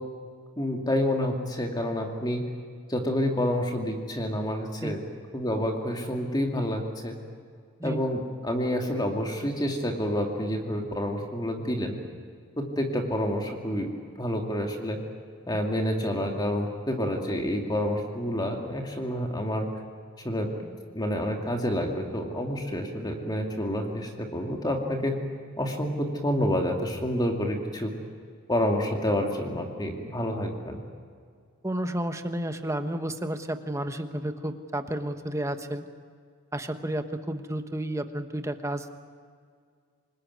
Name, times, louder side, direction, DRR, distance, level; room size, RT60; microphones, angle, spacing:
voice 1, 0.6-2.4 2.9-5.0 5.3-7.1 7.8-12.0 12.6-13.9 14.2-15.0 15.5-19.7 20.2-20.5 20.9-25.1 25.6-27.9 28.5-30.8, equal, 20° left, 2 dB, 2.4 m, -28 dB
voice 2, 31.6-35.9 36.5-38.9, right 1 dB, 15° right, 8 dB, 1.2 m, -31 dB
27.0 x 20.0 x 9.5 m, 2.1 s
head